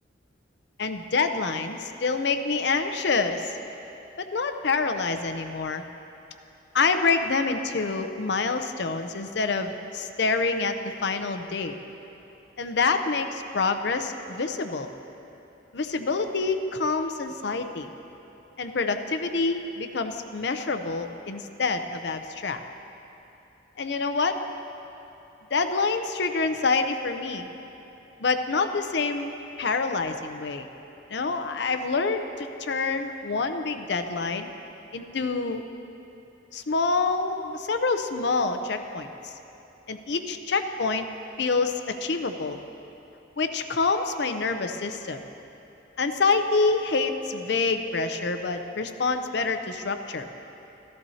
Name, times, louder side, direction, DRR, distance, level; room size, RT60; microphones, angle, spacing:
voice 1, 0.8-3.5 4.2-5.8 6.7-10.8 11.0-11.7 12.6-14.9 15.7-17.9 18.6-22.6 23.8-24.4 25.5-27.5 28.2-30.7 31.1-34.5 34.9-35.6 36.5-39.3 39.9-41.1 41.4-42.6 43.4-45.2 46.0-50.3, left 4 dB, 65° left, 8 dB, 0.6 m, -27 dB
15.0 x 13.5 x 2.8 m, 2.9 s
head